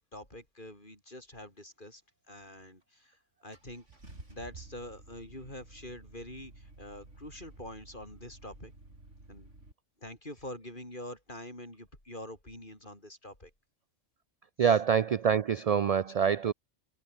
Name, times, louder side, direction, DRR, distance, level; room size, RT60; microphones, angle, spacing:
voice 1, 0.0-2.0 2.3-3.8 4.3-8.7 9.3-9.5 10.0-13.5 14.6-14.8, left 1 dB, 45° left, 7.8 m, -45 dB
Car / Engine starting, 2.8-2.9 3.5-9.7, right 2 dB, 90° right, 6.5 m, -53 dB
voice 2, 14.6-16.5, right 7 dB, 70° right, 0.3 m, -25 dB
omnidirectional pair, 1.2 m